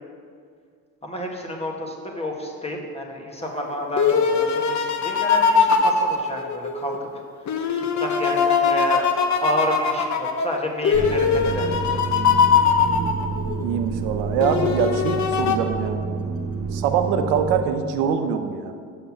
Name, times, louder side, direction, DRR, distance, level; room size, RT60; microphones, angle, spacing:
voice 1, 1.0-7.1 8.0-9.0 9.4-12.4, equal, 15° left, 1 dB, 1.6 m, -30 dB
sound 1, 3.4-7.0 7.5-13.6 14.4-15.6, left 5 dB, 50° left, 0.9 m, -21 dB
sound 2, 10.9-17.6, right 5 dB, 55° right, 1.3 m, -29 dB
voice 2, 13.6-16.0 16.7-18.7, right 7 dB, 85° right, 7 dB, 0.8 m, -23 dB
6.7 x 5.5 x 7.3 m, 2.1 s
supercardioid pair, 80°, 38 cm